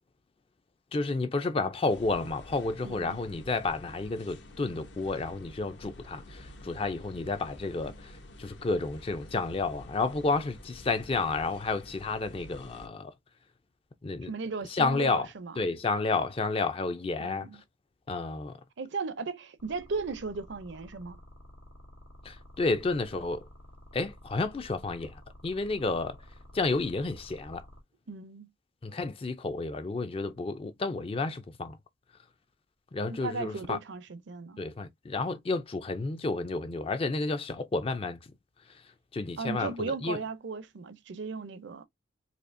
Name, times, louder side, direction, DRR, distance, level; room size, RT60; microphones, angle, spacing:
voice 1, 0.9-13.1 14.0-14.3 14.7-15.3 15.6-17.5 18.1-18.6 22.2-23.5 23.9-25.1 25.4-26.2 26.5-27.6 28.8-31.8 32.9-33.8 34.6-38.2 39.1-40.2, left 3 dB, 30° left, 0.4 m, -31 dB
sound 1, 1.9-12.9, left 1 dB, 60° left, 0.7 m, -49 dB
voice 2, 2.8-3.2 14.3-15.6 17.2-17.6 18.8-21.2 28.1-28.5 33.1-34.6 39.4-41.8, right 4 dB, 60° right, 0.5 m, -36 dB
sound 2, 19.6-27.8, equal, 90° left, 1.5 m, -51 dB
4.3 x 2.7 x 2.5 m
head